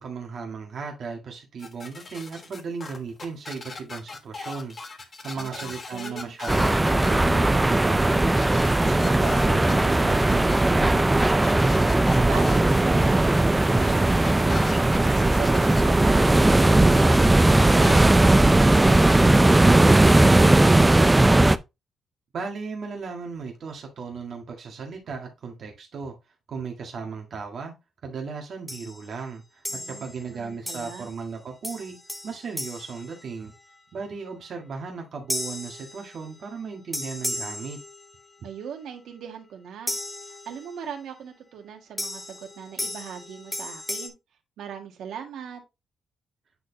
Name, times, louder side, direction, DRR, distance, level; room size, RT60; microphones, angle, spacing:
voice 1, 0.0-8.4 8.8-11.0 22.3-26.2 26.5-27.7 28.0-32.0 32.2-33.5 33.9-37.8, right 5 dB, 50° right, 1.8 m, -36 dB
sound 1, 1.6-19.6, left 3 dB, 30° left, 1.2 m, -39 dB
voice 2, 5.3-6.3 11.3-17.3 17.8-21.4 29.7-31.1 38.4-40.0 40.5-44.1 44.6-45.6, right 8 dB, 80° right, 1.8 m, -39 dB
sound 2, 6.5-21.6, right 2 dB, 10° right, 0.3 m, -18 dB
sound 3, 28.7-29.1 29.6-30.2 30.7-31.2 31.6-33.8 35.3-36.5 36.9-38.4 39.9-40.9 42.0-44.1, left 1 dB, 5° left, 0.7 m, -35 dB
9.1 x 4.2 x 2.7 m
cardioid pair, 155°, 0 cm